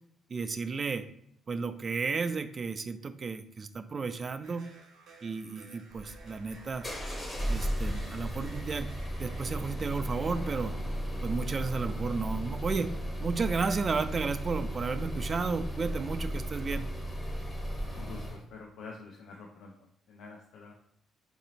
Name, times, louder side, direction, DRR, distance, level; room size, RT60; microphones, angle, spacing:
voice 1, 0.3-1.1 1.5-4.6 5.2-6.9 7.5-10.8 11.2-12.9 13.2-16.9, right 4 dB, 40° right, 10 dB, 0.3 m, -33 dB
sound 1, 4.4-9.9, right 3 dB, 75° right, 0.8 m, -56 dB
sound 2, 5.9-18.4, equal, 25° left, 0.8 m, -35 dB
voice 2, 17.9-19.7 20.1-20.7, left 4 dB, 75° left, 0 dB, 0.4 m, -47 dB
4.0 x 2.6 x 2.8 m, 0.71 s
cardioid pair, 90°, 0 cm